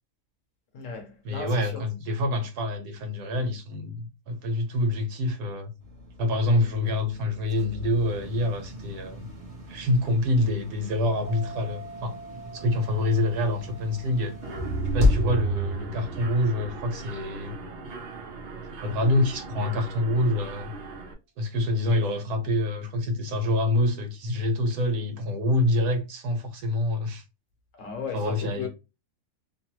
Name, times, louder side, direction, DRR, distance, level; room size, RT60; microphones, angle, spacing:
voice 1, 0.7-1.8 27.7-28.7, left 5 dB, 60° left, 1.1 m, -36 dB
voice 2, 1.2-5.7 6.2-9.3 9.7-12.2 12.5-14.3 14.9-17.5 18.8-20.7 21.4-27.2 28.1-28.7, left 1 dB, 80° right, 1.4 m, -26 dB
sound 1, 5.8-16.8, left 3 dB, 25° right, 1.0 m, -34 dB
sound 2, 11.3-18.3, right 2 dB, 10° left, 0.6 m, -47 dB
Mechanisms, 14.4-21.1, right 5 dB, 55° right, 0.7 m, -34 dB
3.0 x 2.1 x 2.9 m
omnidirectional pair, 1.6 m